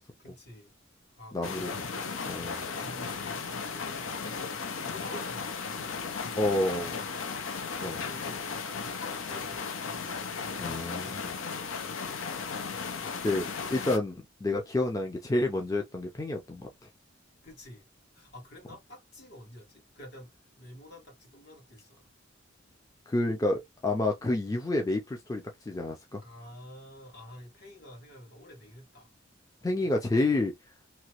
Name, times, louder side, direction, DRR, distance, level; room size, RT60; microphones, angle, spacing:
voice 1, 0.2-0.7 1.1-2.0 2.3-6.4 6.7-7.7 8.0-8.5 8.8-11.2 17.4-17.8 18.1-22.1 26.2-29.1 30.0-30.2, left 1 dB, 60° left, 1.6 m, -49 dB
voice 2, 1.3-1.9 2.3-2.6 6.4-7.0 7.8-8.0 10.6-11.4 13.2-16.7 23.1-26.2 29.6-30.5, left 2 dB, 20° left, 0.4 m, -29 dB
sound 1, 1.4-14.0, left 5 dB, 85° left, 0.6 m, -36 dB
3.0 x 2.3 x 2.9 m
head